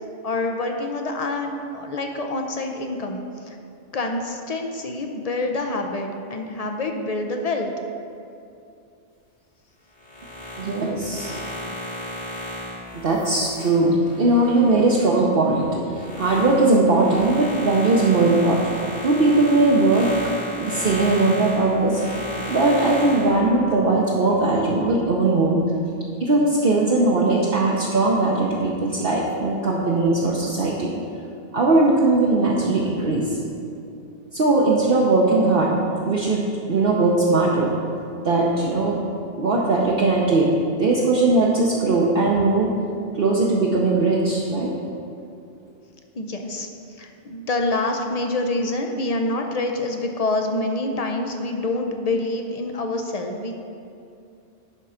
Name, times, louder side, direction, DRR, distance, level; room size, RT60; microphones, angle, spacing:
voice 1, 0.2-3.6 3.9-7.7 32.8-32.9 46.1-46.7 47.0-53.6, left 2 dB, 45° left, 4 dB, 0.5 m, -26 dB
sound 1, 10.0-15.1 15.5-23.4, equal, 65° left, 2.0 m, -33 dB
voice 2, 10.6-11.3 13.0-15.8 16.2-20.1 20.6-22.0 22.5-25.6 26.2-30.9 31.5-33.4 34.3-35.7 36.0-36.4 36.7-37.7 38.2-38.9 39.4-40.5 40.8-42.7 43.1-44.7, right 2 dB, 55° right, -4 dB, 0.9 m, -19 dB
10.5 x 3.8 x 5.7 m, 2.6 s
omnidirectional pair, 1.2 m